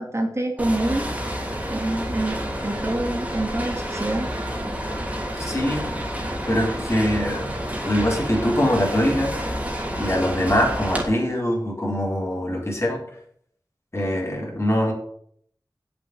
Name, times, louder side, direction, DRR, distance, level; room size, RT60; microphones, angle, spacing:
voice 1, 0.0-1.4 1.7-4.3, right 1 dB, 40° right, 1 dB, 2.6 m, -26 dB
sound 1, 0.6-11.0, equal, 20° right, 3.2 m, -29 dB
voice 2, 5.4-5.9 6.5-7.5 7.8-9.4 10.0-13.0 13.9-14.9, equal, 35° left, -2 dB, 4.1 m, -23 dB
7.8 x 7.5 x 8.2 m, 0.66 s
wide cardioid pair, 50°, 8 cm